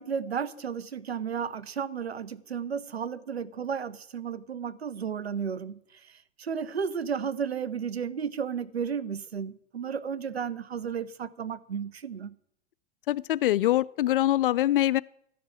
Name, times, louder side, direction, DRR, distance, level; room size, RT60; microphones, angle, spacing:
voice 1, 0.0-12.4, right 7 dB, 75° right, 0.9 m, -33 dB
voice 2, 13.1-15.0, left 14 dB, 60° left, 0.4 m, -24 dB
12.5 x 7.3 x 9.0 m
figure-of-eight pair, 90°, 31 cm